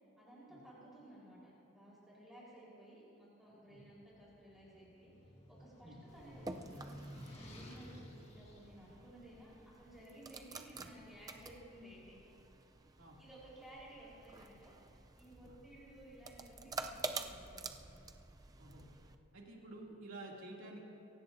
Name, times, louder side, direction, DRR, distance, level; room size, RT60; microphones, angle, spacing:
voice 1, 0.2-6.8 7.3-12.0 13.2-17.7, right 1 dB, ahead, -8 dB, 4.1 m, -56 dB
sound 1, 4.0-10.3, equal, 30° left, 1.7 m, -54 dB
sound 2, 6.1-19.2, right 3 dB, 15° right, 0.4 m, -49 dB
voice 2, 19.3-20.9, right 2 dB, 70° right, -2 dB, 2.6 m, -51 dB
23.0 x 17.5 x 2.6 m, 2.9 s
head